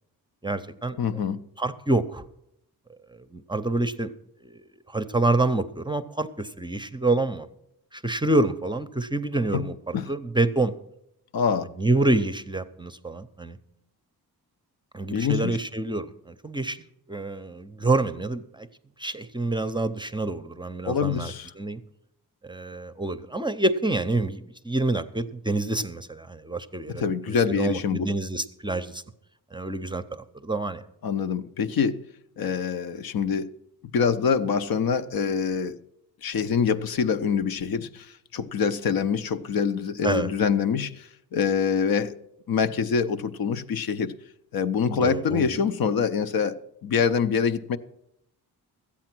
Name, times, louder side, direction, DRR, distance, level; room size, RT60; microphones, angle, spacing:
voice 1, 0.4-1.0 1.6-2.2 3.1-4.1 4.4-4.6 4.9-7.5 7.9-10.7 11.8-13.6 14.9-16.8 17.1-18.7 19.0-21.8 22.4-29.0 29.5-30.8 40.0-40.3 44.8-45.6, right 2 dB, 10° right, 0.6 m, -27 dB
voice 2, 1.0-1.4 9.5-9.7 9.9-10.1 11.3-11.7 15.1-15.6 20.8-21.5 26.9-28.1 31.0-32.0 32.4-33.5 33.9-35.8 36.2-42.2 42.5-44.1 44.5-47.8, left 6 dB, 65° left, 0.7 m, -25 dB
13.0 x 8.6 x 6.0 m
cardioid pair, 90°, 38 cm